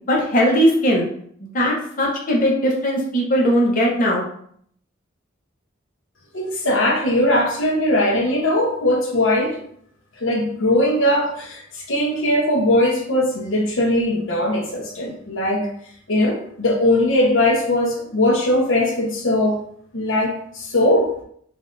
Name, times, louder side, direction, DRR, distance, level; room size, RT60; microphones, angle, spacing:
voice 1, 0.1-1.1 1.5-4.2, equal, 45° left, -2 dB, 0.8 m, -19 dB
voice 2, 6.3-9.6 10.2-15.7 16.1-19.6 19.9-21.1, left 1 dB, 90° left, 0 dB, 0.9 m, -20 dB
5.3 x 2.6 x 2.5 m, 0.65 s
head